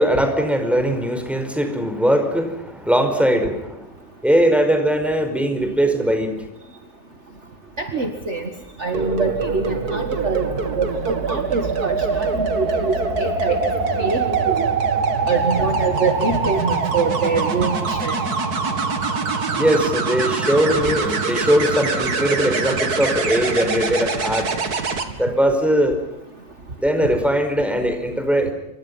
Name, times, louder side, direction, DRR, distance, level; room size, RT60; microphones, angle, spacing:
voice 1, 0.0-3.8 4.2-6.3 19.6-24.5 25.2-26.0 26.8-28.5, equal, ahead, 6 dB, 5.1 m, -20 dB
voice 2, 7.8-8.5 8.8-10.5 10.8-13.6 14.0-14.7 15.3-18.1, right 4 dB, 40° right, 5 dB, 2.2 m, -24 dB
sound 1, 8.9-25.1 27.0-27.2, right 4 dB, 55° right, 2.7 m, -23 dB
28.0 x 25.0 x 5.7 m, 0.84 s
omnidirectional pair, 2.0 m